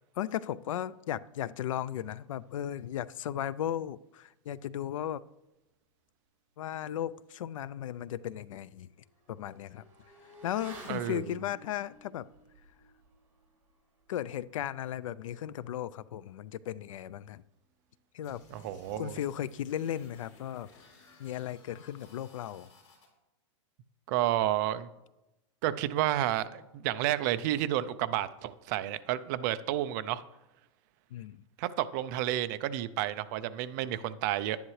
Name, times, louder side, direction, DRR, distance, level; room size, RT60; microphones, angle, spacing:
voice 1, 0.2-5.2 6.6-8.9 9.3-9.8 10.4-12.2 14.1-17.4 18.1-18.4 18.9-20.7 21.2-22.7 31.1-31.4, left 11 dB, 80° left, 19 dB, 0.4 m, -36 dB
Motorcycle / Accelerating revving vroom, 7.5-7.6 8.0-18.0 18.3-18.4, equal, 15° right, 4.2 m, -56 dB
voice 2, 10.9-11.2 18.5-19.2 24.1-24.9 25.6-30.2 31.6-34.6, right 13 dB, 35° right, 13 dB, 0.4 m, -31 dB
sound 1, 18.2-23.1, left 3 dB, 60° left, 3.8 m, -58 dB
11.0 x 10.5 x 3.2 m, 0.96 s
supercardioid pair, 160°, 17 cm